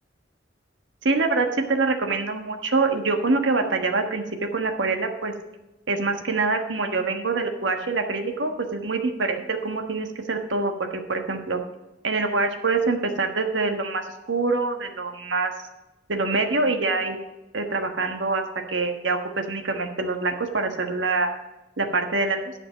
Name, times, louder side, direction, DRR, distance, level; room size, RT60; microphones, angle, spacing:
voice 1, 1.0-4.2 4.5-5.3 5.9-11.6 12.0-15.5 16.1-17.2 17.5-18.4 18.7-21.3 21.8-22.5, right 3 dB, 80° right, 5 dB, 1.4 m, -25 dB
12.0 x 5.1 x 7.9 m, 1.0 s
head